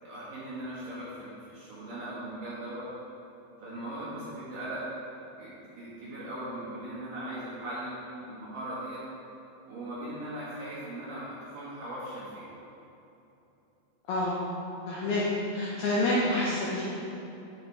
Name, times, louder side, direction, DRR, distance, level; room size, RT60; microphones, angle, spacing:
voice 1, 0.0-2.9 3.6-4.8 5.4-9.0 9.7-12.5, right 1 dB, 65° right, -9 dB, 2.2 m, -39 dB
voice 2, 14.9-15.2 15.5-16.8, left 1 dB, 85° left, -7 dB, 2.2 m, -27 dB
9.9 x 7.7 x 3.3 m, 2.9 s
omnidirectional pair, 6.0 m